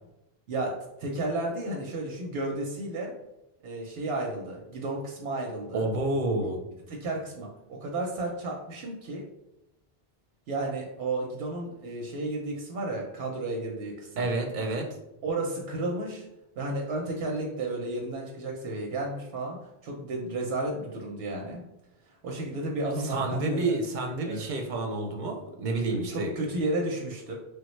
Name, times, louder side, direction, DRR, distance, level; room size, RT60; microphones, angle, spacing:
voice 1, 1.0-3.1 3.6-5.9 6.9-9.2 10.5-14.3 15.2-16.2 16.6-19.6 19.8-21.6 22.2-23.7 24.2-24.5 25.9-27.4, right 2 dB, 85° right, 0 dB, 0.8 m, -32 dB
voice 2, 5.7-6.6 14.2-14.9 23.0-26.3, right 2 dB, 60° right, 2 dB, 0.6 m, -29 dB
3.2 x 2.1 x 3.1 m, 0.88 s
omnidirectional pair, 1.0 m